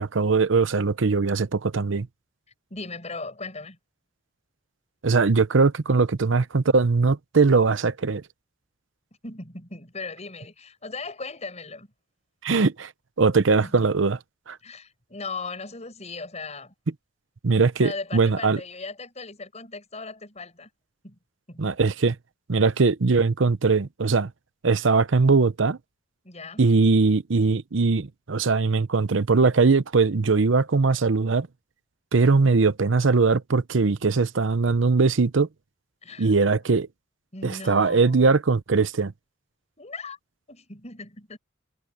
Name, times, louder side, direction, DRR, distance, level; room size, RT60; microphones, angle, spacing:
voice 1, 0.0-2.1 5.0-8.2 12.4-12.9 13.2-14.2 14.5-14.6 17.4-18.6 21.6-22.2 22.5-24.3 24.6-25.8 26.6-31.5 32.1-35.5 36.2-36.9 37.4-39.1, right 4 dB, 75° right, 0.7 m, -21 dB
voice 2, 2.7-3.8 9.2-11.9 13.6-14.0 14.6-16.7 17.8-20.7 21.0-21.2 21.5-21.7 26.2-26.7 36.0-36.4 37.3-38.2 39.8-40.2 40.5-41.4, left 3 dB, 35° left, 6.8 m, -38 dB
head